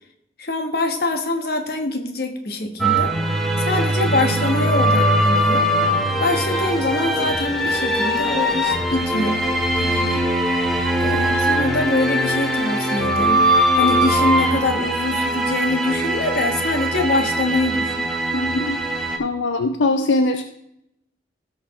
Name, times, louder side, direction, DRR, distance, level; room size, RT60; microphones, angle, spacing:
voice 1, 0.4-3.1 3.6-5.7 6.2-9.4 9.8-10.2 11.0-18.1, left 2 dB, 55° left, 5 dB, 1.3 m, -24 dB
sound 1, 2.8-19.2, right 1 dB, ahead, 1.3 m, -21 dB
voice 2, 18.3-18.8 19.2-20.4, left 2 dB, 80° left, 7 dB, 0.6 m, -22 dB
16.0 x 6.6 x 3.1 m, 0.79 s
head